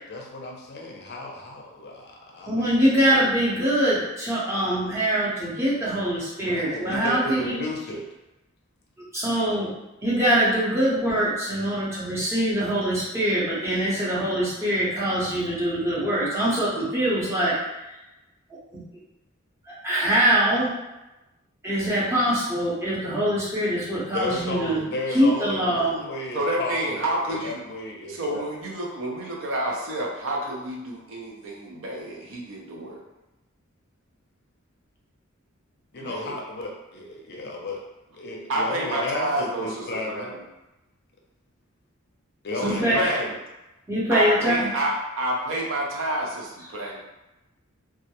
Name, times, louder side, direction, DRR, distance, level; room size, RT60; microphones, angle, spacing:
voice 1, 0.1-2.8 6.4-8.0 24.1-28.5 35.9-37.8 38.1-40.3 42.4-43.3, left 2 dB, 50° left, -1 dB, 0.5 m, -33 dB
voice 2, 2.5-7.6 9.1-9.7 10.0-17.6 18.7-18.8 19.7-20.7 21.6-24.8 25.1-26.0 42.6-43.0 43.9-44.7 46.8-46.9, right 1 dB, 15° right, -9 dB, 0.7 m, -23 dB
voice 3, 26.3-27.6 28.1-33.0 36.0-36.4 38.5-40.4 42.6-43.2 44.1-47.0, right 1 dB, 65° right, -1 dB, 0.5 m, -29 dB
2.3 x 2.1 x 2.8 m, 0.99 s
head